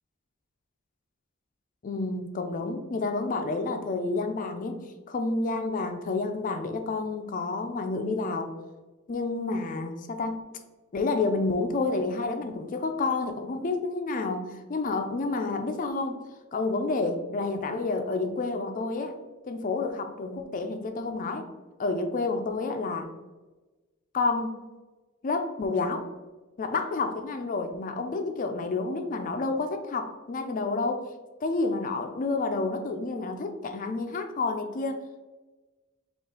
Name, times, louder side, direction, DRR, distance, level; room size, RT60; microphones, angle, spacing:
voice 1, 1.8-8.5 9.1-10.4 10.9-16.2 16.5-19.2 19.5-21.5 21.8-23.1 24.1-24.7 25.2-26.1 26.6-31.1 31.4-35.2, left 3 dB, 40° left, 7 dB, 0.4 m, -29 dB
5.4 x 2.4 x 3.8 m, 1.2 s
head